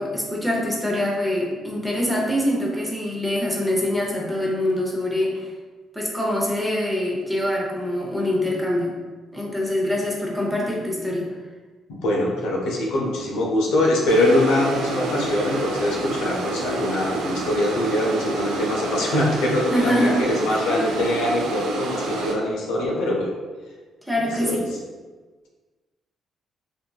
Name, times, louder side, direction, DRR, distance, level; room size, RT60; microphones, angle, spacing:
voice 1, 0.0-5.4 5.9-8.9 9.3-11.2 19.7-20.2 20.5-20.6 24.1-24.6, left 1 dB, 5° right, -3 dB, 0.6 m, -24 dB
voice 2, 11.9-23.3 24.4-24.6, left 1 dB, 90° left, -1 dB, 0.5 m, -23 dB
sound 1, 14.1-22.3, right 2 dB, 90° right, 0.4 m, -29 dB
2.8 x 2.5 x 2.3 m, 1.4 s
cardioid pair, 90°, 0 cm